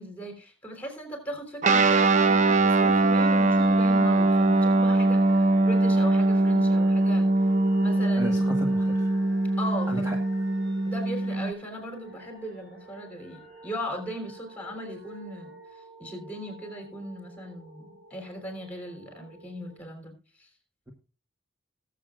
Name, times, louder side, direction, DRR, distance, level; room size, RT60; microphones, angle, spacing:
voice 1, 0.0-5.2 5.6-7.3 7.8-8.4 9.6-10.1 10.8-15.5 16.0-20.5, equal, 10° left, 3 dB, 3.3 m, -38 dB
Guitar, 1.6-11.5, right 2 dB, 35° right, 0.7 m, -22 dB
sound 1, 3.3-19.8, right 2 dB, 60° right, 5.4 m, -44 dB
voice 2, 8.2-9.1 9.9-10.2, equal, 15° right, 0 dB, 1.4 m, -34 dB
20.5 x 7.5 x 2.4 m, 0.33 s
head